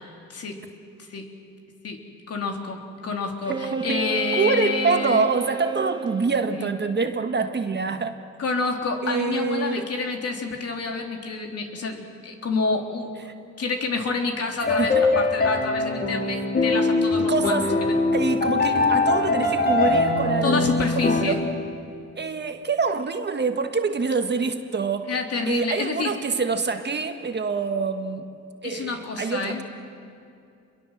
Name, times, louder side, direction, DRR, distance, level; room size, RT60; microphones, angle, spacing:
voice 1, 0.3-0.6 1.0-1.3 1.8-2.0 2.3-5.2 6.5-6.7 8.4-13.3 13.6-17.5 20.4-21.4 25.1-26.1 28.6-29.6, left 4 dB, 55° left, 3 dB, 3.5 m, -28 dB
Wind instrument woodwind instrument, 3.4-6.3, right 6 dB, 15° right, 1.4 m, -31 dB
voice 2, 3.5-4.0 4.3-8.1 9.0-10.1 13.3-13.4 14.8-15.1 17.3-17.7 18.1-21.5 22.2-25.1 25.5-28.3 28.6-29.6, right 4 dB, 35° right, 7 dB, 1.7 m, -26 dB
sound 1, 14.6-21.2, left 3 dB, 30° left, 4.0 m, -22 dB
28.0 x 22.5 x 7.5 m, 2.5 s
cardioid pair, 90°, 30 cm